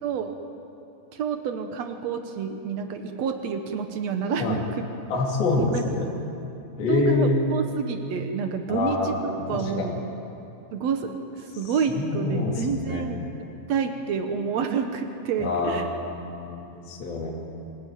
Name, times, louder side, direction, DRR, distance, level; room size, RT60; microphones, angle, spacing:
voice 1, 0.0-0.4 1.1-4.8 5.6-5.8 6.9-9.9 10.7-13.3 13.7-15.8, right 6 dB, 85° right, 6 dB, 1.5 m, -28 dB
voice 2, 5.1-6.1 6.8-7.4 8.7-9.9 11.9-13.2 15.4-17.5, left 3 dB, 60° left, -2 dB, 4.4 m, -26 dB
25.5 x 17.5 x 9.3 m, 2.9 s
omnidirectional pair, 4.9 m